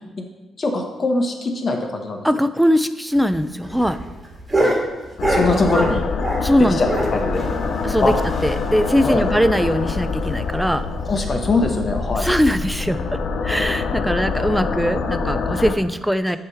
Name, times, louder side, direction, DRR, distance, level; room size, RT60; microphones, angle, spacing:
voice 1, 0.6-2.2 4.6-4.7 5.3-6.0 6.8-7.4 8.0-8.1 9.0-9.2 11.1-12.3, left 3 dB, 45° left, 3 dB, 1.0 m, -22 dB
voice 2, 2.2-4.0 5.5-5.7 6.4-6.9 7.8-8.1 8.4-10.9 12.2-16.4, equal, ahead, 12 dB, 0.4 m, -20 dB
sound 1, 3.1-6.5 6.8-8.8 9.1-9.2 9.5-9.6 10.0-10.1 10.7-11.0 11.8-11.9, right 1 dB, 20° right, 1.7 m, -25 dB
sound 2, 5.2-15.7, left 4 dB, 70° left, 0.5 m, -25 dB
7.3 x 3.1 x 4.7 m, 1.1 s
supercardioid pair, 60°, 0 cm